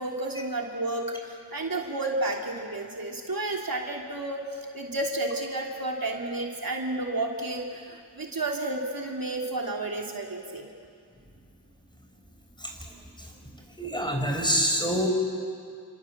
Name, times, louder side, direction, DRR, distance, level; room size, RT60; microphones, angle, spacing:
voice 1, 0.0-10.7, right 2 dB, 55° right, 0 dB, 3.1 m, -31 dB
voice 2, 13.8-15.1, equal, 10° left, 2 dB, 6.0 m, -26 dB
29.0 x 25.5 x 7.4 m, 2.2 s
cardioid pair, 45°, 41 cm